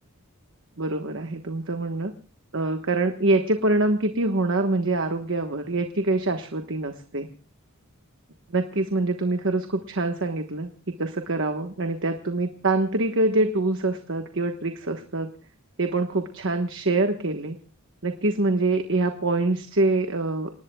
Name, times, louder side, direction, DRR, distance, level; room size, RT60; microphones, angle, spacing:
voice 1, 0.8-2.1 2.5-7.3 8.5-15.3 15.8-17.6 18.0-20.5, right 2 dB, 60° right, 6 dB, 1.3 m, -25 dB
29.5 x 19.0 x 2.3 m, 0.39 s
head